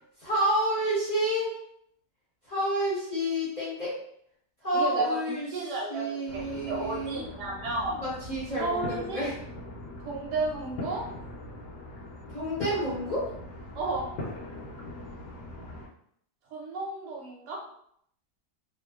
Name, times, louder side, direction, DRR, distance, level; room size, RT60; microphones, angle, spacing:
voice 1, 0.2-1.5 2.5-3.9 4.6-5.5 5.9-7.2 8.0-9.3 12.3-13.3, right 1 dB, 35° left, -9 dB, 0.7 m, -29 dB
voice 2, 4.7-8.0 8.6-9.3 10.0-11.0 13.7-14.1 16.5-17.6, right 3 dB, 90° right, -2 dB, 1.3 m, -32 dB
sound 1, 6.3-15.9, left 1 dB, 70° left, 1.1 m, -41 dB
2.9 x 2.1 x 2.3 m, 0.69 s
omnidirectional pair, 1.7 m